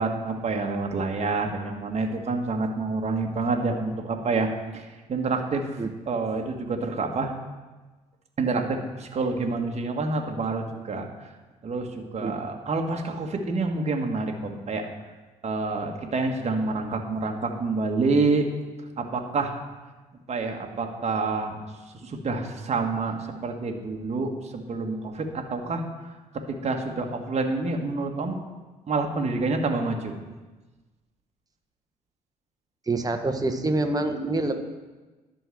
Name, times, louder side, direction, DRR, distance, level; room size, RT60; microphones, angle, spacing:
voice 1, 0.0-4.5 4.7-5.7 6.1-7.4 8.4-11.1 11.6-14.9 15.4-18.5 19.0-19.5 20.3-21.6 22.0-26.2 26.5-28.4 28.9-30.1, right 3 dB, 35° right, 3 dB, 1.6 m, -28 dB
voice 2, 32.9-34.7, right 2 dB, 20° right, 6 dB, 1.4 m, -26 dB
11.5 x 6.2 x 6.2 m, 1.2 s
figure-of-eight pair, 50°, 19 cm